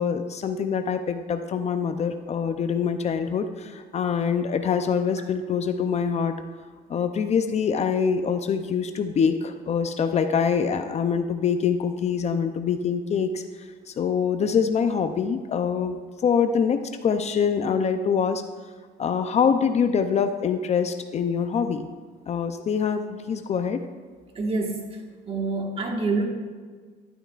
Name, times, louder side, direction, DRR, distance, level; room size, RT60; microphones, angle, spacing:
voice 1, 0.0-6.4 6.9-13.4 13.9-18.4 19.0-21.9 22.3-23.9, left 6 dB, 40° left, 8 dB, 0.5 m, -24 dB
voice 2, 24.3-24.8 25.3-26.2, right 3 dB, 35° right, 1 dB, 1.5 m, -26 dB
11.5 x 8.9 x 2.4 m, 1.5 s
cardioid pair, 110°, 17 cm